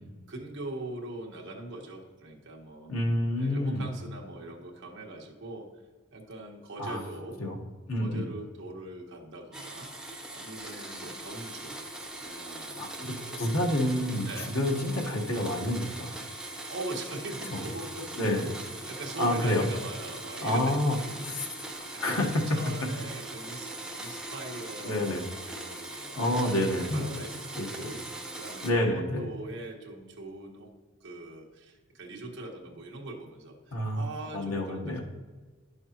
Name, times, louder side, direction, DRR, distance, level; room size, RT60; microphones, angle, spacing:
voice 1, 0.3-2.9 3.4-5.7 6.1-7.4 8.0-9.9 10.3-11.8 12.2-13.4 14.2-14.6 16.3-26.5 26.9-28.0 28.3-30.7 31.0-35.0, right 2 dB, 60° right, -1 dB, 1.4 m, -42 dB
voice 2, 2.9-3.9 6.8-7.0 7.4-7.6 7.9-8.3 12.8-13.1 13.4-16.2 17.5-17.6 18.2-18.5 19.2-19.7 20.4-21.0 21.2-21.5 22.0-22.4 24.0-24.1 24.8-25.2 26.2-27.0 27.6-27.9 28.6-29.3 33.7-34.0 34.3-35.0, left 1 dB, 80° left, 1 dB, 1.3 m, -28 dB
Domestic sounds home sounds, 9.5-28.7, right 2 dB, 5° right, 0.6 m, -41 dB
10.5 x 6.5 x 3.0 m, 1.4 s
head